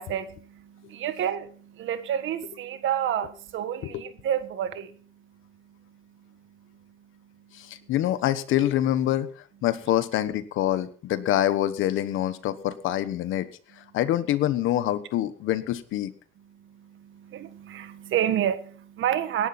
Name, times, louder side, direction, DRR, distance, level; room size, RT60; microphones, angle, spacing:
voice 1, 0.0-7.9 16.5-19.5, right 10 dB, 80° right, 1.6 m, -31 dB
voice 2, 7.5-13.5 13.8-16.1, left 12 dB, 90° left, 1.2 m, -26 dB
17.5 x 11.5 x 4.2 m
cardioid pair, 90°, 20 cm